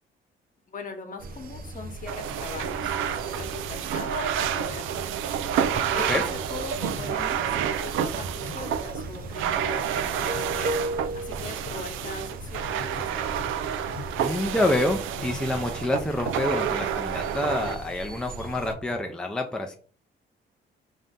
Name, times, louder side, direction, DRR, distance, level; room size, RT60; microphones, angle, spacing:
voice 1, 0.7-5.2 5.4-13.4, left 4 dB, 40° left, 5 dB, 1.1 m, -41 dB
sound 1, 1.2-18.7, right 2 dB, 45° right, 0.6 m, -39 dB
sound 2, 1.8-7.6 7.9-9.7 10.1-10.7 11.1-14.7 15.0-16.1 16.6-16.8 17.1-17.3 17.6-17.8 18.2-19.0, left 4 dB, 75° left, 0.7 m, -43 dB
sound 3, 2.1-17.8, right 9 dB, 85° right, 0.4 m, -29 dB
voice 2, 14.2-19.8, left 1 dB, 5° left, 3 dB, 0.5 m, -27 dB
3.7 x 2.8 x 3.6 m, 0.42 s
cardioid pair, 90°, 20 cm